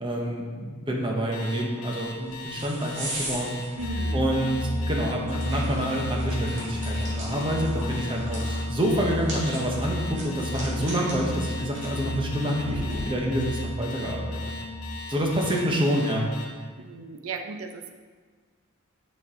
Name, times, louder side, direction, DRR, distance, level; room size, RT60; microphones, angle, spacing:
voice 1, 0.0-3.5 4.1-4.6 4.9-14.4 15.1-16.3, equal, 20° right, -1 dB, 0.9 m, -27 dB
Alarm, 1.3-16.5, left 4 dB, 75° left, 1.1 m, -40 dB
sound 1, 2.0-13.5, right 1 dB, 55° right, 2.1 m, -40 dB
sound 2, 3.8-14.9, left 1 dB, 5° left, 2.1 m, -32 dB
voice 2, 3.8-4.3 16.8-17.9, right 4 dB, 70° right, 6 dB, 0.6 m, -36 dB
6.9 x 5.3 x 3.7 m, 1.5 s
head